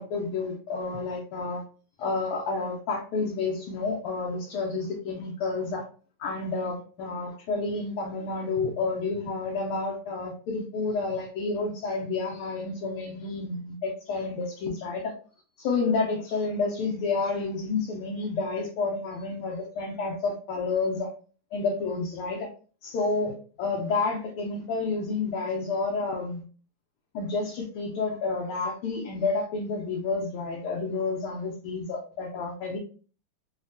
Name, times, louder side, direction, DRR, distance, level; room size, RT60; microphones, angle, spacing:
voice 1, 0.0-1.6 2.0-5.8 6.2-15.1 15.6-21.1 21.5-22.5 22.8-26.4 27.1-32.8, left 3 dB, 80° left, -1 dB, 1.5 m, -30 dB
3.8 x 2.1 x 2.5 m, 0.39 s
omnidirectional pair, 2.4 m